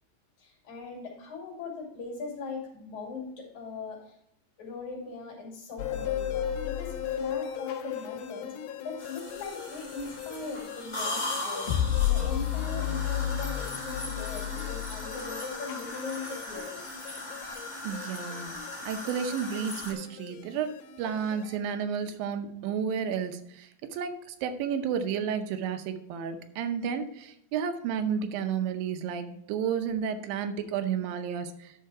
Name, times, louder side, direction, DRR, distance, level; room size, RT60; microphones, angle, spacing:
voice 1, 0.4-4.2 4.6-8.5 8.8-16.9, left 4 dB, 60° left, -2 dB, 3.7 m, -40 dB
sound 1, 5.8-21.6, left 10 dB, 90° left, 2.5 m, -34 dB
sound 2, 9.0-19.9, left 2 dB, 40° left, 0.5 m, -38 dB
voice 2, 17.8-18.5 18.8-20.7 21.0-31.7, right 7 dB, 85° right, 8 dB, 2.6 m, -32 dB
11.5 x 4.6 x 4.7 m, 0.77 s
omnidirectional pair, 4.0 m